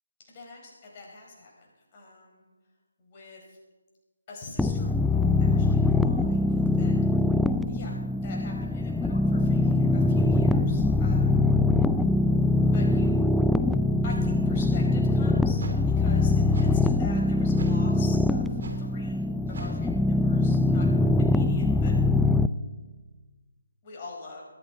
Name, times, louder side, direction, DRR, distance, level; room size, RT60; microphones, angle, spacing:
voice 1, 0.3-1.7 1.9-2.5 3.0-3.6 4.3-7.0 7.7-11.4 12.6-13.2 14.0-15.6 16.0-20.9 21.2-21.9 23.8-24.4, left 3 dB, 30° left, -2 dB, 4.8 m, -45 dB
sound 1, 4.6-22.5, left 3 dB, 5° left, 0.4 m, -23 dB
sound 2, 14.7-14.8 15.6-15.8 16.5-16.7 17.6-17.8 18.6-18.8 19.5-19.8, right 2 dB, 55° right, 3.0 m, -39 dB
22.0 x 13.5 x 4.1 m, 1.3 s
figure-of-eight pair, 150°, 0 cm